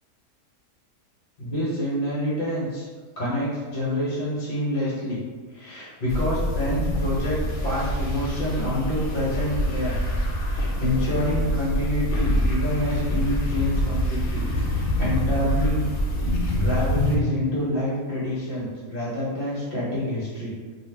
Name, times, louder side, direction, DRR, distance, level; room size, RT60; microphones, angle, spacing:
voice 1, 1.4-2.9 3.2-5.2 5.5-10.0 10.5-15.9 16.5-20.5, left 1 dB, 45° left, -8 dB, 0.9 m, -27 dB
sound 1, 6.1-17.2, equal, 80° left, 1.0 m, -25 dB
2.6 x 2.0 x 3.3 m, 1.4 s
omnidirectional pair, 1.5 m